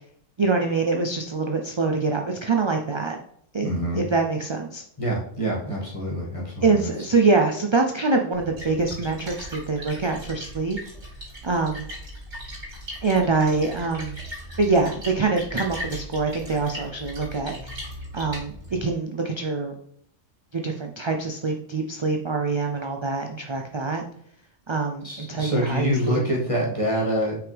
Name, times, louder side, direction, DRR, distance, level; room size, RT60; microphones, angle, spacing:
voice 1, 0.4-3.2 3.5-4.8 6.6-10.8 11.4-11.9 13.0-14.2 14.6-17.6 18.1-18.5 18.8-19.8 20.5-24.0 24.7-26.2, right 3 dB, 40° right, 3 dB, 0.4 m, -24 dB
voice 2, 3.6-4.1 5.0-6.9 25.0-27.4, equal, 25° left, -4 dB, 2.1 m, -26 dB
Splash splatter, 8.3-18.9, equal, 65° right, 3.4 m, -38 dB
5.7 x 5.5 x 3.4 m, 0.67 s
omnidirectional pair, 1.3 m